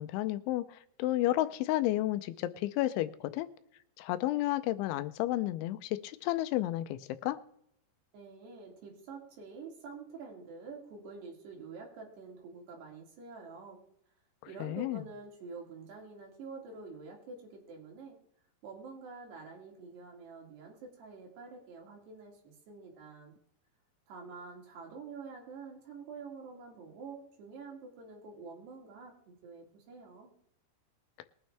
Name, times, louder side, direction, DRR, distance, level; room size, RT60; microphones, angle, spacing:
voice 1, 0.0-3.5 4.0-7.4 14.6-15.0, left 15 dB, 85° left, 13 dB, 3.1 m, -32 dB
voice 2, 8.1-13.8 14.5-18.2 18.6-23.3 24.1-30.3, right 4 dB, 65° right, 0 dB, 4.6 m, -47 dB
21.0 x 9.2 x 3.4 m, 0.72 s
omnidirectional pair, 5.3 m